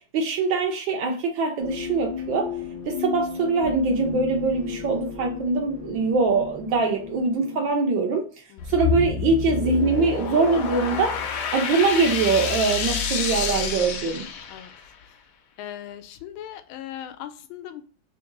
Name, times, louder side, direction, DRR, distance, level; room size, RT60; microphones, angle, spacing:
voice 1, 0.1-2.5 2.9-8.3 8.7-11.2 11.5-14.3, right 4 dB, 75° right, 1 dB, 1.3 m, -23 dB
sound 1, 1.6-7.7, left 7 dB, 30° right, 0.7 m, -34 dB
voice 2, 8.5-8.9 14.5-14.7 15.0-15.2 15.6-17.8, left 11 dB, 85° left, 10 dB, 1.4 m, -39 dB
sound 2, 8.6-14.9, left 6 dB, 70° left, 1.1 m, -28 dB
3.5 x 2.6 x 3.8 m, 0.41 s
omnidirectional pair, 2.2 m